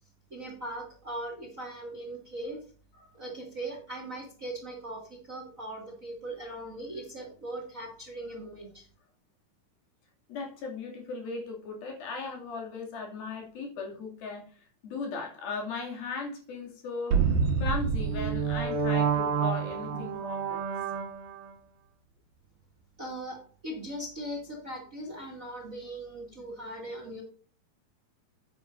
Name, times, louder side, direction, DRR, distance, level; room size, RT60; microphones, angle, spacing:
voice 1, 0.3-2.6 3.1-8.9 23.0-27.2, right 1 dB, 25° right, 1 dB, 2.0 m, -39 dB
voice 2, 10.3-20.6, left 4 dB, 75° left, 0 dB, 4.4 m, -37 dB
sound 1, 17.1-21.5, right 6 dB, 70° right, 2.8 m, -28 dB
10.0 x 9.7 x 2.6 m, 0.43 s
omnidirectional pair, 4.3 m